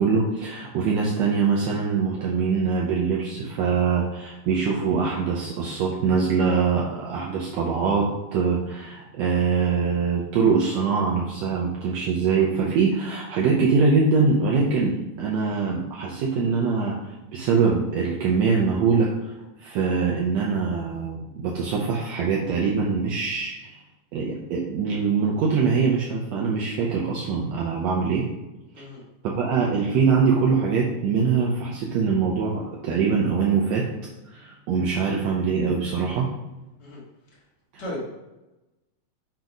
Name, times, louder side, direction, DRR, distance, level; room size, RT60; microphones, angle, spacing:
voice 1, 0.0-19.3 19.6-23.8 24.1-28.2 29.2-33.8 34.3-36.3 37.7-37.8, right 5 dB, 80° right, -3 dB, 1.6 m, -23 dB
voice 2, 28.7-29.0 36.8-37.0 37.8-38.0, left 1 dB, 40° left, -5 dB, 1.8 m, -34 dB
8.1 x 3.0 x 5.2 m, 1.0 s
omnidirectional pair, 4.0 m